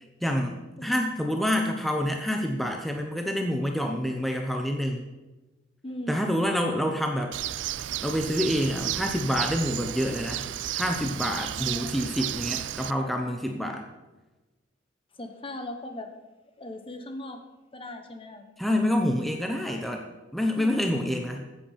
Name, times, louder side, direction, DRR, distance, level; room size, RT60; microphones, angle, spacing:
voice 1, 0.2-5.1 6.1-7.3 8.0-10.5 10.7-13.8 18.6-20.0 20.3-21.4, equal, ahead, 2 dB, 0.9 m, -27 dB
voice 2, 5.8-6.3 11.6-11.9 15.2-16.1 16.6-17.4 17.7-18.5 19.7-19.9 20.5-21.0, left 1 dB, 30° left, 6 dB, 1.2 m, -38 dB
Bird, 7.3-12.9, right 12 dB, 75° right, 0.4 m, -33 dB
14.5 x 7.9 x 5.8 m, 1.1 s
head